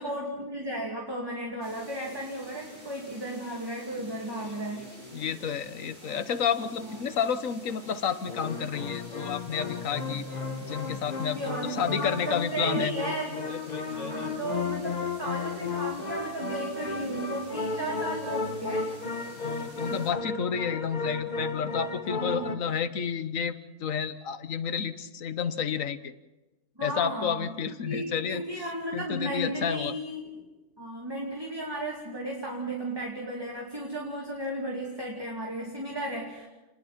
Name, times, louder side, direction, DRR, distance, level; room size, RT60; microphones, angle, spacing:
voice 1, 0.0-4.9 6.8-7.2 11.3-13.4 13.9-19.0 22.1-22.6 26.8-30.5 30.8-36.5, right 1 dB, 15° right, -2 dB, 2.7 m, -35 dB
sound 1, 1.6-20.1, equal, 85° right, 8.0 m, -48 dB
sound 2, 4.4-5.6 8.3-22.6, left 4 dB, 30° left, 1.2 m, -34 dB
voice 2, 5.1-10.2 10.6-12.9 19.4-26.1 26.8-28.4 28.9-29.9, left 7 dB, 65° left, 11 dB, 1.4 m, -30 dB
29.5 x 20.5 x 4.3 m, 1.1 s
omnidirectional pair, 1.5 m